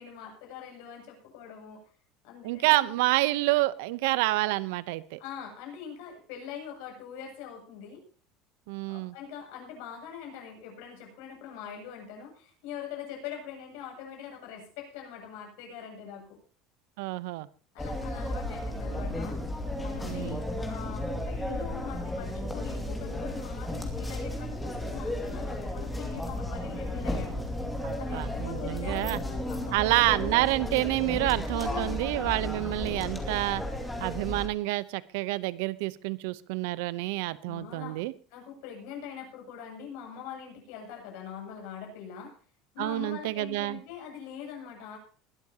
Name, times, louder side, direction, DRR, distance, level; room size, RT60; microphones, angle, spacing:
voice 1, 0.0-1.8 2.2-3.0 5.2-8.0 8.9-16.4 17.7-19.4 19.8-20.4 20.7-27.4 28.0-29.2 29.5-30.0 31.6-32.0 37.4-38.0 38.3-42.3 42.7-45.0, left 8 dB, 70° left, 1 dB, 7.6 m, -43 dB
voice 2, 2.4-5.2 8.7-9.1 17.0-17.5 20.0-20.4 27.8-29.2 29.7-33.6 34.0-38.1 42.8-43.8, right 19 dB, 75° right, 17 dB, 0.8 m, -28 dB
sound 1, 17.8-34.5, left 1 dB, 5° left, 2.4 m, -34 dB
21.0 x 12.0 x 2.9 m, 0.42 s
cardioid pair, 160°, 0 cm